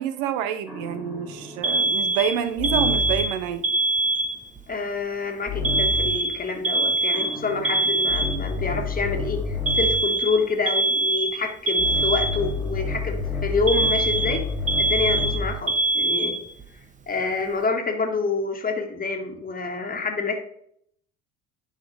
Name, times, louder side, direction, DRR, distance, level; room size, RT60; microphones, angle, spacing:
voice 1, 0.0-3.7, right 9 dB, 60° right, 11 dB, 0.7 m, -27 dB
sound 1, 0.7-3.4 5.5-6.3 7.1-10.1 11.8-15.7, left 3 dB, ahead, 2.1 m, -30 dB
Alarm, 1.6-4.6 5.6-8.6 9.7-12.6 13.7-16.6, right 2 dB, 20° right, 0.9 m, -23 dB
voice 2, 4.7-14.4 14.8-16.3 17.1-20.4, left 4 dB, 20° left, 3 dB, 1.7 m, -27 dB
10.5 x 4.0 x 3.4 m, 0.68 s
hypercardioid pair, 70°, 39 cm